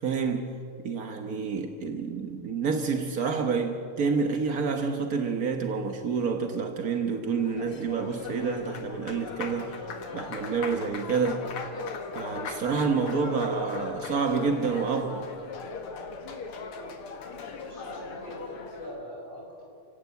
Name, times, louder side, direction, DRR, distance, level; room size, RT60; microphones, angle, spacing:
voice 1, 0.0-9.8 10.1-11.5 12.1-15.3, right 5 dB, 60° right, 5 dB, 0.9 m, -28 dB
Applause, 7.1-19.0, left 4 dB, 50° left, 2.4 m, -38 dB
voice 2, 17.6-19.6, equal, 15° right, -2 dB, 5.5 m, -42 dB
28.5 x 17.0 x 8.4 m, 2.6 s
omnidirectional pair, 3.4 m